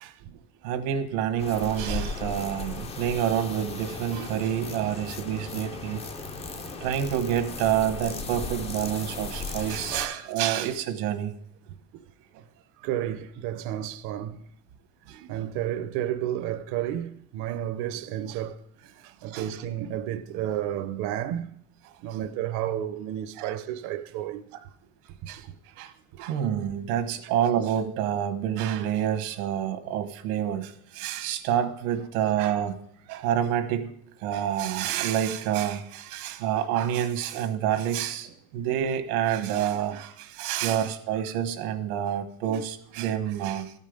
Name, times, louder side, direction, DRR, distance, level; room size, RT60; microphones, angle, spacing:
voice 1, 0.0-0.4 10.0-10.1 11.7-11.8 12.8-14.4 15.3-21.5 22.0-24.4 26.1-26.2 33.1-33.3 42.5-42.6, right 11 dB, 45° right, 0.5 m, -32 dB
voice 2, 0.6-6.0 6.8-11.3 15.1-15.3 19.3-19.6 23.4-23.5 25.3-25.5 25.8-25.9 26.2-32.7 33.1-33.9 34.2-38.3 38.5-43.7, right 10 dB, 90° right, 1.3 m, -28 dB
sound 1, 1.4-10.1, left 3 dB, 15° left, 0.4 m, -36 dB
13.5 x 5.5 x 5.1 m
cardioid pair, 160°, 43 cm